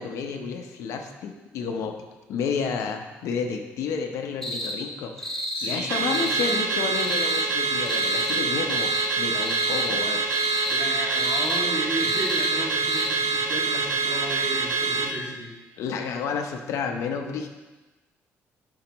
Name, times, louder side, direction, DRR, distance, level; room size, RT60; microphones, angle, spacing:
voice 1, 0.0-1.9 2.3-10.6 15.8-17.5, left 5 dB, 80° left, 4 dB, 0.8 m, -31 dB
sound 1, 4.4-4.8 5.2-5.8 6.1-6.6 6.9-7.4 7.8-8.4 8.7-9.1 9.4-9.9 10.3-10.8 11.1-11.6 12.0-12.5 12.8-13.1, left 1 dB, 5° left, 1.0 m, -31 dB
voice 2, 5.5-6.3 10.7-15.5, right 1 dB, 35° right, -5 dB, 2.1 m, -33 dB
Car / Alarm, 5.9-15.1, right 4 dB, 80° right, 0.7 m, -26 dB
10.0 x 5.6 x 3.0 m, 1.2 s
cardioid pair, 165°, 5 cm